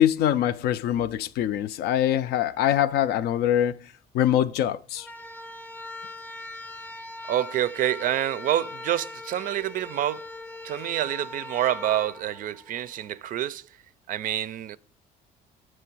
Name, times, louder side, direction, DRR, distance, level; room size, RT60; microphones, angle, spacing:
voice 1, 0.0-5.1, left 11 dB, 70° left, 0.4 m, -24 dB
sound 1, 5.0-13.1, left 2 dB, 5° left, 0.6 m, -41 dB
voice 2, 7.3-10.2 10.6-13.7 14.1-14.8, right 12 dB, 55° right, 0.4 m, -27 dB
7.7 x 3.1 x 6.0 m
cardioid pair, 110°, 17 cm